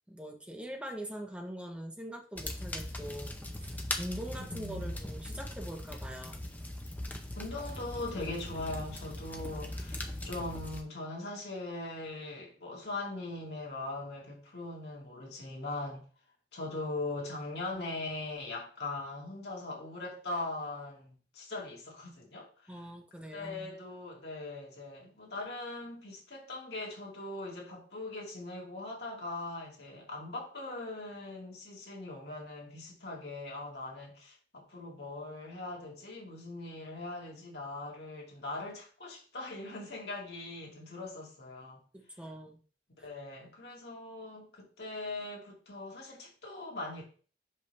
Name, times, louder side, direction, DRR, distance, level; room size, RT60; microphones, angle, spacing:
voice 1, 0.1-6.5 22.7-23.7 41.9-42.6 43.0-43.1, equal, 5° right, 1.0 m, -43 dB
sound 1, 2.4-10.8, left 1 dB, 10° left, 0.7 m, -40 dB
voice 2, 4.5-5.0 7.3-16.0 16.5-22.8 23.3-41.8 43.0-47.0, left 2 dB, 70° left, 2.3 m, -41 dB
5.5 x 5.4 x 3.4 m
head